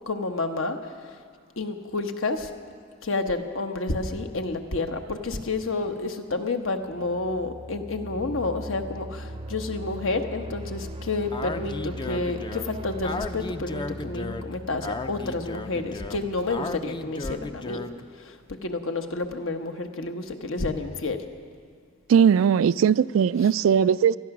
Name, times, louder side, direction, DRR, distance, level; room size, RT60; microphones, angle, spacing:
voice 1, 0.1-0.8 1.6-2.5 3.0-17.8 18.2-18.4 18.6-21.2, left 3 dB, 75° left, 6 dB, 1.1 m, -30 dB
sound 1, 6.8-17.6, right 1 dB, 30° right, 0.6 m, -40 dB
Speech, 11.3-18.1, left 2 dB, 25° left, 0.4 m, -35 dB
voice 2, 22.1-24.2, right 7 dB, 75° right, 19 dB, 0.3 m, -19 dB
18.5 x 13.0 x 6.0 m, 2.1 s
head